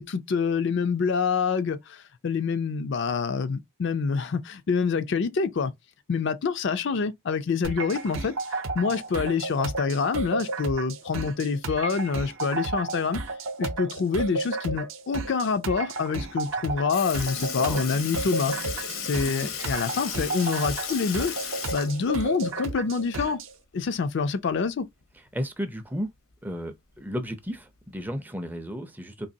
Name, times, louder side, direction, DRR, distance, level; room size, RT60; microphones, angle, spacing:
voice 1, 0.0-5.7 6.1-8.4 8.7-13.2 13.6-18.6 19.0-21.3 21.7-23.4 23.7-24.9, left 5 dB, 55° left, 0.4 m, -26 dB
sound 1, 7.6-23.5, right 3 dB, 65° right, 0.7 m, -33 dB
Sink (filling or washing) / Liquid, 16.5-16.6 16.9-23.0 23.4-23.5 25.0-25.1 26.0-26.1 26.9-27.2 28.0-28.1, left 7 dB, 75° left, 0.8 m, -35 dB
voice 2, 17.5-17.8 19.2-19.6 25.3-26.1 26.4-29.3, equal, 10° right, 0.4 m, -34 dB
4.0 x 2.9 x 2.7 m
head